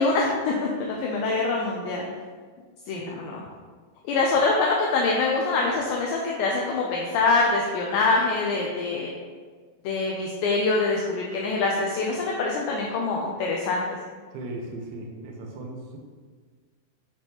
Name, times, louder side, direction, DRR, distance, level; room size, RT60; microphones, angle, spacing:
voice 1, 0.0-2.1 2.9-3.4 4.0-9.1 9.8-14.0, left 3 dB, 80° left, -1 dB, 2.6 m, -24 dB
voice 2, 14.3-16.0, right 2 dB, 85° right, 0 dB, 3.3 m, -37 dB
9.6 x 3.6 x 2.9 m, 1.5 s
omnidirectional pair, 5.4 m